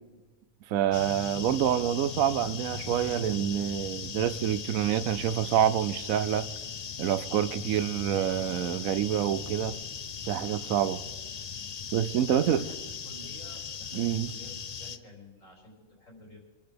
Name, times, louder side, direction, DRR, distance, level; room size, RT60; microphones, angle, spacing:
voice 1, 0.7-6.5 7.0-9.8 10.3-11.0 11.9-12.6 13.9-14.3, right 10 dB, 80° right, 1.1 m, -27 dB
sound 1, 0.9-15.0, left 6 dB, 45° left, 0.5 m, -39 dB
voice 2, 12.1-16.4, left 1 dB, 70° left, 4.4 m, -51 dB
24.0 x 10.5 x 5.2 m
omnidirectional pair, 1.4 m